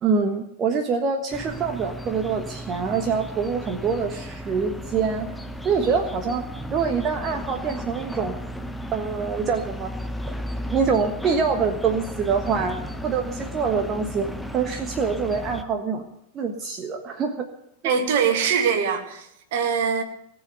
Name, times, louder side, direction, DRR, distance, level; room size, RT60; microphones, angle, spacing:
voice 1, 0.0-5.3 5.6-6.4 6.7-8.4 8.9-9.9 10.7-14.3 14.5-16.0 16.3-17.5 17.8-17.9, right 5 dB, 30° right, 5 dB, 1.4 m, -25 dB
sound 1, 1.3-15.6, equal, ahead, 1.0 m, -35 dB
voice 2, 17.8-20.0, right 6 dB, 55° right, 6 dB, 2.4 m, -23 dB
19.0 x 7.3 x 9.1 m, 0.79 s
figure-of-eight pair, 90°, 0 cm